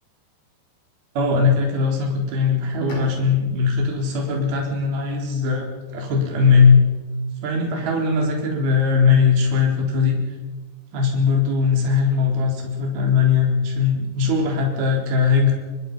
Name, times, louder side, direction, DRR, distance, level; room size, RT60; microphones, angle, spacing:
voice 1, 1.2-5.6 5.9-6.8 7.4-10.4 10.9-15.5, left 5 dB, 50° right, 0 dB, 5.7 m, -19 dB
Bowed string instrument, 2.9-6.5, right 1 dB, 35° left, 6.5 m, -42 dB
24.0 x 24.0 x 5.6 m, 1.3 s
omnidirectional pair, 5.7 m